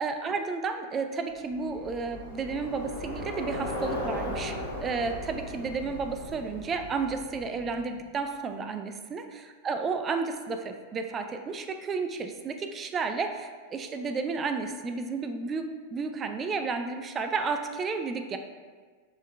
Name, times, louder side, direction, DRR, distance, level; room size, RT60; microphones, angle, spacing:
voice 1, 0.0-18.4, right 4 dB, 25° right, 6 dB, 0.3 m, -32 dB
Bicycle, 1.5-8.0, left 1 dB, 65° left, 1.2 m, -37 dB
5.1 x 3.7 x 2.3 m, 1.5 s
figure-of-eight pair, 90°, 0 cm